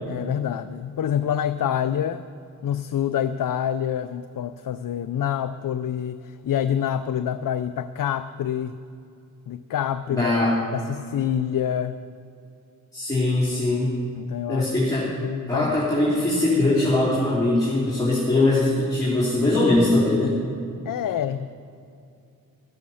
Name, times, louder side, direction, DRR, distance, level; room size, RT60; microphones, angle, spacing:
voice 1, 0.1-2.2 2.6-8.8 9.5-10.3 10.7-12.0 14.2-14.7 15.2-15.8 20.8-21.6, left 9 dB, 65° left, 11 dB, 0.5 m, -27 dB
voice 2, 10.1-10.6 12.9-13.9 14.5-15.0 15.5-20.4, left 2 dB, 10° left, -8 dB, 3.4 m, -21 dB
13.0 x 12.5 x 5.7 m, 2.5 s
wide cardioid pair, 95°, 36 cm